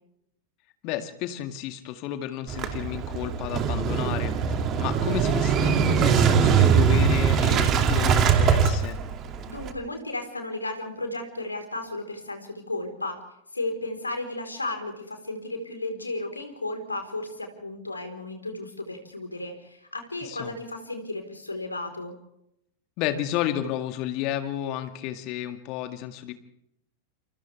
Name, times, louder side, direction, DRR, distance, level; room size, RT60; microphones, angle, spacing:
voice 1, 0.8-9.0 20.2-20.6 23.0-26.3, left 12 dB, 40° left, 8 dB, 2.0 m, -32 dB
Motorcycle / Engine starting, 2.5-9.7, right 7 dB, 30° right, 2.5 m, -22 dB
voice 2, 9.5-13.2 13.5-22.1, left 2 dB, 80° left, 5 dB, 4.3 m, -34 dB
29.0 x 28.5 x 3.5 m, 0.79 s
figure-of-eight pair, 90°, 0 cm